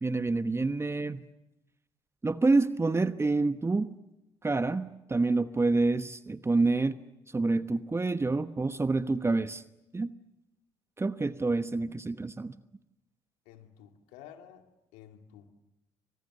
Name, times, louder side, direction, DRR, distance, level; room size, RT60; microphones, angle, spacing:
voice 1, 0.0-1.2 2.2-3.9 4.4-7.0 7.3-9.6 9.9-10.1 11.0-12.6, right 3 dB, 20° right, 12 dB, 1.1 m, -27 dB
voice 2, 13.5-14.7 14.9-15.5, left 10 dB, 80° left, 6 dB, 2.4 m, -51 dB
29.0 x 25.5 x 6.6 m, 0.93 s
hypercardioid pair, 55°, 12 cm